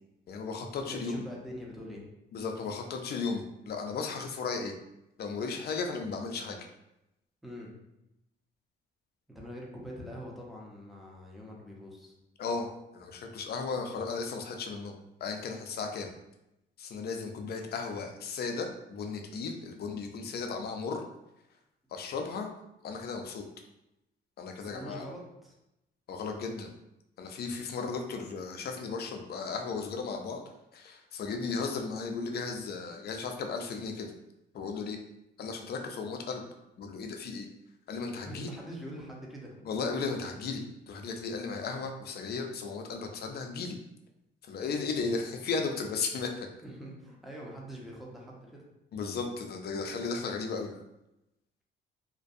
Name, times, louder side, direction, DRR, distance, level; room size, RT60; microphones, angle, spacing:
voice 1, 0.3-1.2 2.3-4.7 5.2-6.6 12.4-15.0 15.2-16.1 16.8-21.0 21.9-22.5 22.8-23.4 24.4-25.1 26.1-26.7 27.2-30.4 30.7-34.1 34.5-35.0 35.4-36.4 36.8-37.5 37.9-38.5 39.7-43.8 44.4-46.5 48.9-50.7, left 4 dB, 55° left, 4 dB, 0.4 m, -35 dB
voice 2, 0.8-2.0 7.4-7.7 9.3-12.1 24.6-25.5 38.3-39.7 46.6-48.6, equal, ahead, -3 dB, 0.6 m, -44 dB
2.5 x 2.2 x 2.5 m, 0.88 s
cardioid pair, 90°, 20 cm